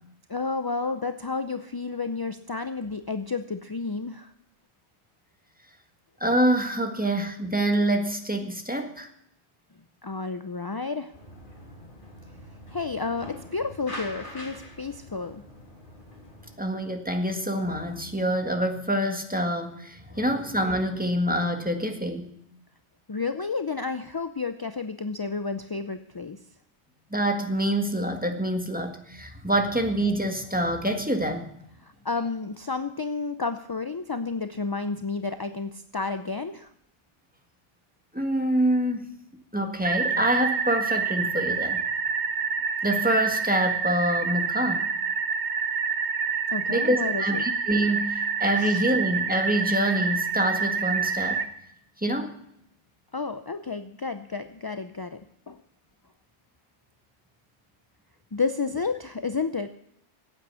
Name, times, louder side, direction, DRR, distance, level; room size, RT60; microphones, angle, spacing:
voice 1, 0.3-4.3 10.0-11.1 12.7-15.4 20.1-20.2 23.1-26.4 31.8-36.7 46.5-47.4 48.6-48.8 53.1-55.2 55.5-55.6 58.3-59.7, left 4 dB, 30° left, 9 dB, 0.4 m, -31 dB
voice 2, 6.2-9.1 16.6-22.3 27.1-31.5 38.1-39.1 39.5-41.8 42.8-44.9 46.7-51.4 52.0-52.3, right 1 dB, 10° right, 4 dB, 1.7 m, -26 dB
sound 1, 11.1-16.6, left 1 dB, 45° left, 3.4 m, -44 dB
sound 2, 39.8-51.4, right 5 dB, 75° right, 1.4 m, -27 dB
15.5 x 8.8 x 8.3 m, 0.73 s
omnidirectional pair, 1.2 m